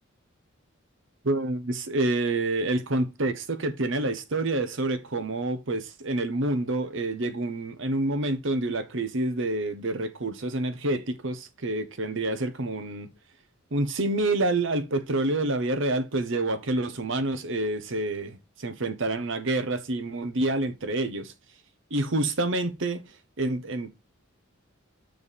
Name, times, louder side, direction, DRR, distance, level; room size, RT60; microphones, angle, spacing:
voice 1, 1.2-13.1 13.7-21.3 21.9-23.0 23.4-24.0, right 2 dB, 60° right, 1.1 m, -28 dB
7.2 x 4.6 x 4.2 m
head